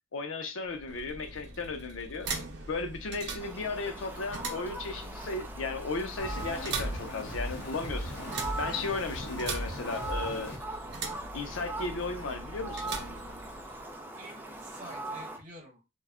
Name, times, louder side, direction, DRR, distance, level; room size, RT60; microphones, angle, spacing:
voice 1, 0.1-2.3 2.7-8.1 8.6-10.5 11.3-13.0, left 3 dB, 90° left, 0.6 m, -35 dB
sound 1, 0.6-13.9, right 3 dB, 60° right, 0.6 m, -41 dB
Fowl, 3.4-15.4, right 2 dB, 10° right, 0.4 m, -41 dB
sound 2, 6.2-10.6, equal, 60° left, 0.7 m, -38 dB
voice 2, 13.9-16.0, right 1 dB, 40° right, 1.2 m, -50 dB
2.2 x 2.1 x 3.5 m
head